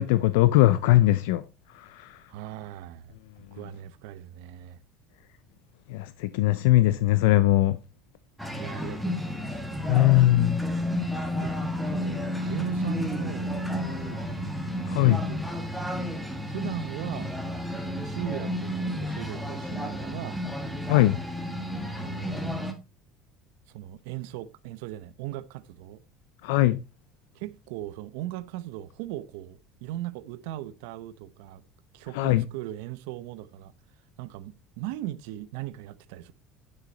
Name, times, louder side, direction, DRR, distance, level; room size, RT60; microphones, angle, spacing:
voice 1, 0.0-1.4 1.7-2.2 5.9-7.8 9.9-10.6 14.9-15.2 20.9-21.2 26.4-26.8 32.1-32.5, left 16 dB, 90° left, 0.6 m, -21 dB
voice 2, 2.3-4.8 8.5-9.9 11.4-11.6 11.8-14.2 15.0-15.7 16.5-17.3 18.0-20.4 21.9-22.6 23.7-26.0 27.3-31.6 31.9-33.7 34.2-36.3, right 14 dB, 85° right, 0.8 m, -39 dB
sound 1, 8.4-22.7, left 1 dB, ahead, 2.0 m, -31 dB
10.5 x 6.4 x 4.1 m
cardioid pair, 125°, 0 cm